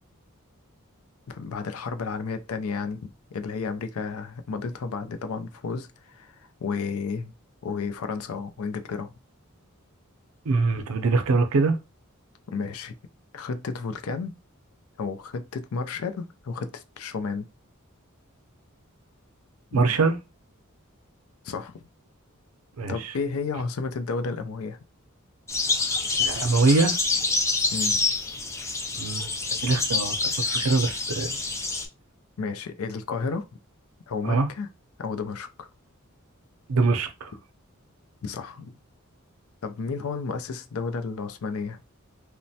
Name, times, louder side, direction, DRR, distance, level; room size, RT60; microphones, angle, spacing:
voice 1, 1.3-7.3 7.6-9.1 12.5-12.9 13.3-14.3 15.0-17.5 19.7-19.8 21.4-21.7 22.8-24.8 27.7-28.0 32.4-33.5 34.1-34.7 35.0-35.7 38.2-38.8 39.6-41.8, left 4 dB, 85° left, 0.4 m, -32 dB
voice 2, 10.5-11.8 19.7-20.2 22.8-23.1 26.2-27.0 29.0-29.3 29.6-30.1 30.5-31.4 34.2-34.5 36.7-37.3, right 3 dB, 85° right, 0.5 m, -23 dB
sound 1, 25.5-31.9, left 3 dB, 15° left, 0.4 m, -27 dB
3.0 x 2.1 x 2.7 m
head